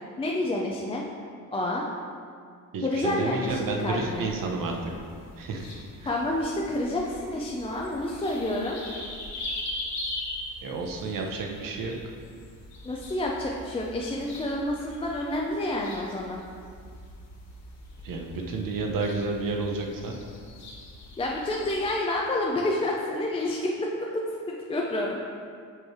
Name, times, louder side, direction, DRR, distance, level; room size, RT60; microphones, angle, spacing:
voice 1, 0.2-1.0 1.5-1.9 2.8-4.3 6.1-8.8 12.8-16.4 21.2-25.2, left 1 dB, 15° left, -2 dB, 0.4 m, -29 dB
voice 2, 2.7-4.8 5.4-5.6 10.6-11.9 18.0-20.1, right 3 dB, 75° right, 1 dB, 0.9 m, -30 dB
sound 1, 3.4-21.9, left 1 dB, 55° left, 1.3 m, -42 dB
7.7 x 3.2 x 4.7 m, 2.2 s
wide cardioid pair, 160°, 34 cm